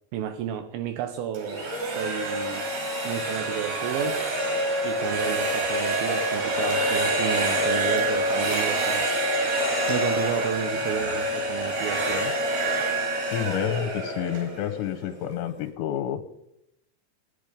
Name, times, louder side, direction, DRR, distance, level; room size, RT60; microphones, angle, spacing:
voice 1, 0.1-2.7 3.1-4.2 4.8-9.1 9.9-12.3, right 9 dB, 80° right, 8 dB, 2.1 m, -32 dB
sound 1, 1.3-15.2, right 1 dB, 55° right, 5.5 m, -26 dB
voice 2, 13.3-16.2, left 11 dB, 80° left, 8 dB, 3.0 m, -29 dB
18.5 x 10.0 x 5.1 m, 0.84 s
omnidirectional pair, 5.2 m